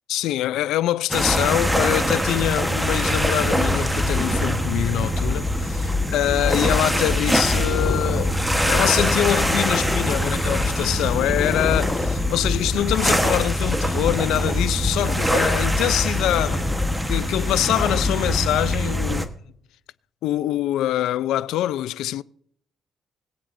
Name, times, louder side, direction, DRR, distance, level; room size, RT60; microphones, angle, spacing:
voice 1, 0.1-16.7 17.1-19.3 20.2-22.2, left 13 dB, 85° left, 0.4 m, -24 dB
sound 1, 1.1-19.3, equal, 5° right, 1.2 m, -23 dB
Purr, 7.0-12.7, left 3 dB, 30° left, 1.4 m, -32 dB
21.0 x 8.7 x 2.6 m
cardioid pair, 90°, 0 cm